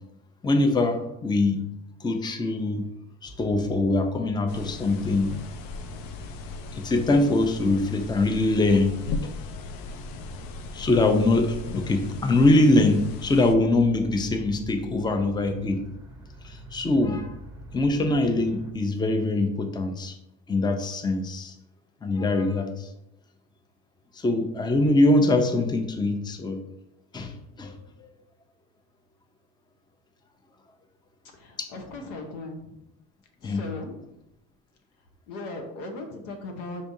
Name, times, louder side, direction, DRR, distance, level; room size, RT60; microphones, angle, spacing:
voice 1, 0.4-1.6 2.0-2.8 3.2-5.3 6.7-9.0 10.7-15.8 16.4-17.3 17.7-20.1 20.5-21.5 22.0-22.9 24.1-26.6 27.1-28.1 31.6-31.7 33.4-33.6, left 2 dB, 10° left, 6 dB, 0.5 m, -23 dB
sound 1, 3.2-18.7, right 1 dB, 10° right, 0.8 m, -45 dB
sound 2, 4.5-13.6, left 4 dB, 65° left, 0.6 m, -38 dB
voice 2, 31.3-32.7 33.4-34.0 35.3-36.9, left 2 dB, 85° left, 3 dB, 1.0 m, -38 dB
5.2 x 3.4 x 2.7 m, 0.85 s
supercardioid pair, 75°, 37 cm